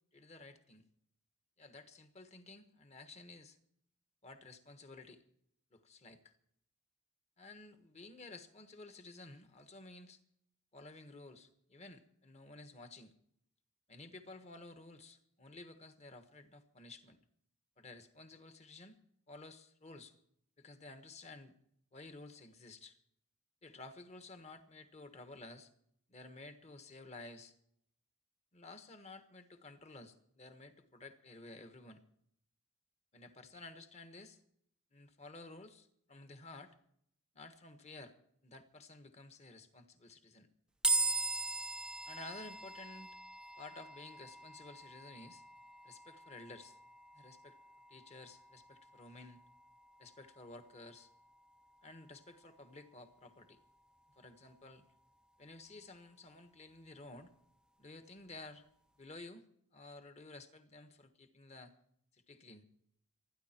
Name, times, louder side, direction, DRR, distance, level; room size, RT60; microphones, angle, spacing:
voice 1, 0.1-0.9 1.6-3.6 4.2-5.2 5.7-6.3 7.4-10.2 10.7-13.1 13.9-17.2 17.8-19.0 19.3-20.1 20.6-21.5 21.9-23.0 23.6-25.7 26.1-27.5 28.5-32.0 33.1-34.4 34.9-36.7 37.3-38.1 38.4-40.5 42.1-43.2 43.6-45.4 45.8-46.8 47.1-47.6 47.9-49.4 50.0-51.1 51.8-53.6 54.1-54.8 55.4-57.3 57.8-58.7 59.0-59.4 59.7-61.7 62.1-62.6, left 2 dB, 30° left, 8 dB, 1.4 m, -53 dB
sound 1, 40.8-54.2, right 3 dB, 5° right, 0.5 m, -42 dB
28.5 x 10.5 x 4.5 m, 0.69 s
head